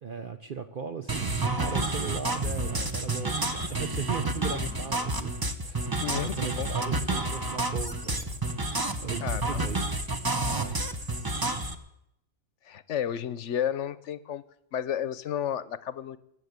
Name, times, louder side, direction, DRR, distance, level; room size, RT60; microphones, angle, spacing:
voice 1, 0.0-5.4 5.6-8.4 9.0-10.0 10.5-10.8, right 7 dB, 50° right, 7 dB, 0.8 m, -38 dB
sound 1, 1.1-11.7, right 2 dB, 20° right, 0.9 m, -30 dB
voice 2, 6.0-6.7 9.2-9.7 12.6-14.4 14.7-16.2, left 9 dB, 70° left, 16 dB, 1.1 m, -32 dB
20.0 x 8.0 x 8.1 m, 0.80 s
omnidirectional pair, 1.3 m